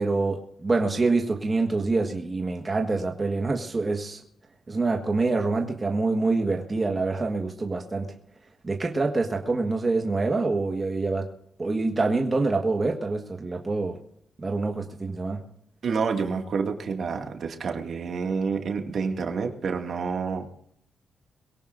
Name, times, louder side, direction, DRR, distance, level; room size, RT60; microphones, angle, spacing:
voice 1, 0.0-4.2 4.7-8.1 8.6-11.3 11.6-14.0 14.4-15.4, right 3 dB, 25° right, 2 dB, 1.5 m, -26 dB
voice 2, 15.8-20.5, right 5 dB, 60° right, 3 dB, 2.1 m, -28 dB
22.5 x 17.0 x 2.6 m, 0.69 s
cardioid pair, 110°, 0 cm